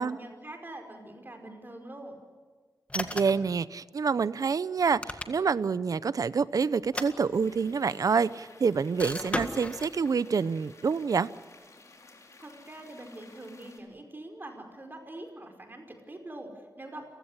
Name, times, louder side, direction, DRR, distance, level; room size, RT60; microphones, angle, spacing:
voice 1, 0.0-2.2 12.4-17.0, right 1 dB, 35° right, 4 dB, 5.0 m, -44 dB
sound 1, 2.9-3.5 4.8-5.7 6.8-7.8 9.0-10.0, left 1 dB, 20° left, 1.9 m, -36 dB
voice 2, 2.9-11.3, right 5 dB, 70° right, 17 dB, 0.7 m, -27 dB
sound 2, 7.3-13.8, left 3 dB, 55° left, 4.4 m, -54 dB
30.0 x 16.5 x 9.9 m, 1.5 s
wide cardioid pair, 85°, 6 cm